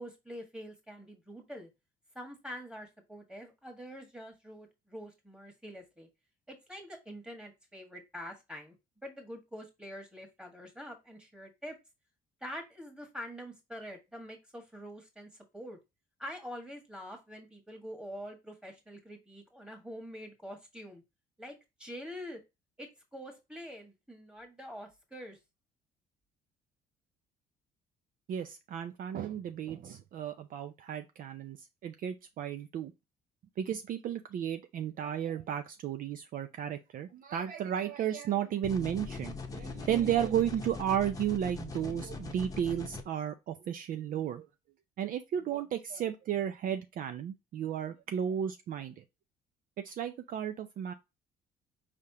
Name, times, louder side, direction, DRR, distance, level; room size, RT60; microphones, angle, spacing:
voice 1, 0.0-1.7 2.1-6.1 6.5-8.7 9.0-11.8 12.4-15.8 16.2-21.0 21.4-22.4 22.8-25.4, equal, 5° right, 1.7 m, -45 dB
voice 2, 28.3-31.6 31.8-32.9 33.6-44.5 45.0-49.0 49.8-50.9, right 9 dB, 55° right, 0.5 m, -33 dB
sound 1, 38.6-43.0, left 4 dB, 20° left, 0.8 m, -41 dB
5.0 x 3.4 x 2.8 m
cardioid pair, 110°, 17 cm